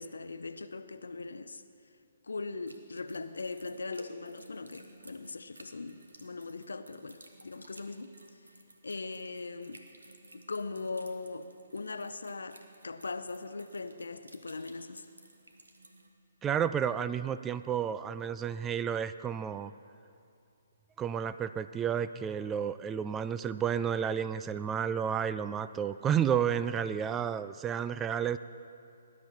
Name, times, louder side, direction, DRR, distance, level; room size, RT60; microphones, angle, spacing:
voice 1, 0.0-1.6 2.2-8.2 8.8-9.9 10.3-15.0, left 3 dB, 75° left, 0.7 m, -40 dB
sound 1, 2.7-16.1, right 2 dB, 85° right, 1.4 m, -56 dB
voice 2, 16.4-19.7 21.0-28.4, right 8 dB, 15° right, 0.3 m, -31 dB
19.0 x 10.5 x 4.5 m
figure-of-eight pair, 135°, 0 cm